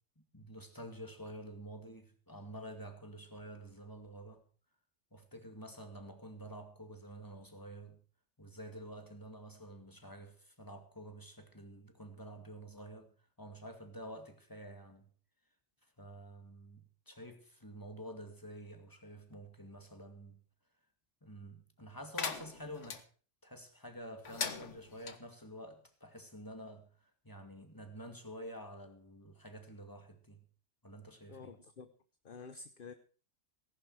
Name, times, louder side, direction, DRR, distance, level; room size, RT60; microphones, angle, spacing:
voice 1, 0.3-4.4 5.1-8.0 8.4-13.1 13.4-15.1 16.0-20.4 21.2-23.0 23.4-30.4 30.8-31.5, right 1 dB, 15° left, 2.4 m, -49 dB
sound 1, 22.1-23.0 24.2-25.2, left 5 dB, 70° left, 1.7 m, -40 dB
voice 2, 31.3-31.9 32.2-32.9, left 4 dB, 45° left, 1.1 m, -49 dB
19.0 x 11.0 x 4.8 m
omnidirectional pair, 1.3 m